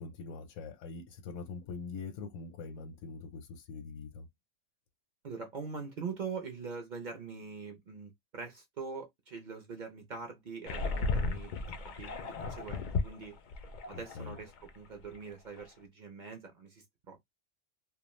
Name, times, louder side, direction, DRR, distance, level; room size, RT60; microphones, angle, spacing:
voice 1, 0.0-4.2 13.9-14.4, left 4 dB, 85° left, 1.0 m, -43 dB
voice 2, 5.2-13.3 13.9-14.5 14.8-17.2, right 5 dB, 50° right, 0.6 m, -43 dB
sound 1, 10.7-14.7 15.0-15.2 15.6-15.7, left 3 dB, 65° left, 0.4 m, -35 dB
2.4 x 2.2 x 3.0 m
omnidirectional pair, 1.3 m